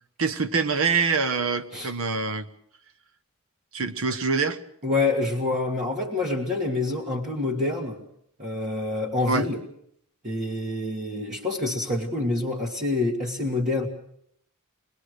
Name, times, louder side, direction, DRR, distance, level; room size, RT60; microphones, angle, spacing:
voice 1, 0.2-2.5 3.7-4.6 9.3-9.4, right 4 dB, 65° right, 11 dB, 1.2 m, -25 dB
voice 2, 4.8-8.0 8.4-9.6 10.2-13.9, left 2 dB, 35° right, -1 dB, 1.9 m, -27 dB
24.5 x 20.0 x 6.6 m, 0.71 s
head